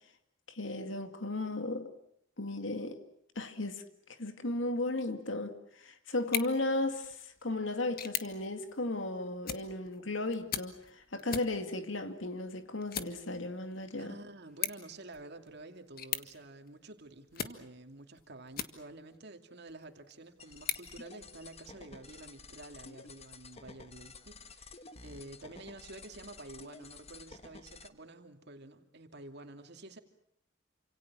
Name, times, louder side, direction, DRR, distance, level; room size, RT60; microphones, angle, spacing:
voice 1, 0.5-1.9 2.4-3.0 3.4-3.8 4.1-14.2, left 2 dB, 75° left, 2.3 m, -35 dB
sound 1, 6.2-19.2 19.7-21.7, left 9 dB, 50° left, 1.7 m, -43 dB
voice 2, 14.0-30.0, right 2 dB, 60° right, 2.5 m, -50 dB
sound 2, 20.4-27.9, left 3 dB, 30° left, 1.4 m, -52 dB
28.5 x 26.5 x 6.2 m
head